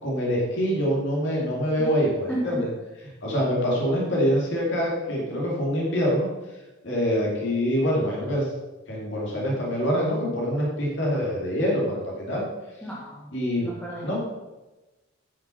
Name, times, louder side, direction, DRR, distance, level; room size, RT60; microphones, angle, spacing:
voice 1, 0.0-2.7 3.2-6.3 6.8-8.5 8.9-12.4 13.3-13.7 14.0-14.2, equal, 60° left, -4 dB, 2.6 m, -25 dB
voice 2, 2.3-2.6 12.8-13.3 13.6-14.2, right 1 dB, 5° left, -6 dB, 1.6 m, -33 dB
10.0 x 6.0 x 5.8 m, 1.1 s
head